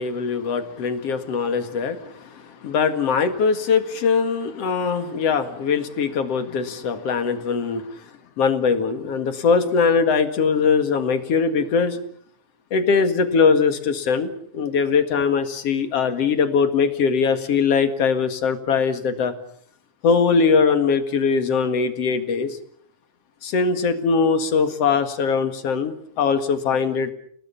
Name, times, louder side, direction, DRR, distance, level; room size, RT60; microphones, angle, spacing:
voice 1, 0.0-7.9 8.4-12.0 12.7-19.3 20.0-22.6 23.4-27.1, left 5 dB, 55° left, 9 dB, 2.8 m, -21 dB
30.0 x 18.5 x 7.1 m, 0.62 s
omnidirectional pair, 3.6 m